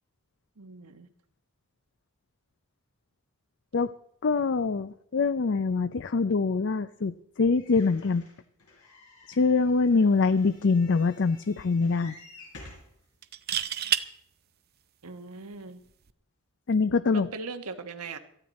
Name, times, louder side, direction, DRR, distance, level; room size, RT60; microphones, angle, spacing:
voice 1, 0.6-1.1 15.0-15.8 17.1-18.2, right 4 dB, 90° right, 7 dB, 1.2 m, -39 dB
voice 2, 4.2-8.2 9.3-12.1 16.7-17.3, left 4 dB, 55° left, 14 dB, 0.5 m, -24 dB
sound 1, 7.5-12.9 13.6-13.7 14.0-14.1, left 2 dB, 80° left, 5.2 m, -51 dB
sound 2, 10.4-10.6 11.0-11.1 13.2-14.1 15.9-16.1, right 10 dB, 45° right, 0.6 m, -28 dB
18.0 x 14.0 x 4.2 m, 0.70 s
head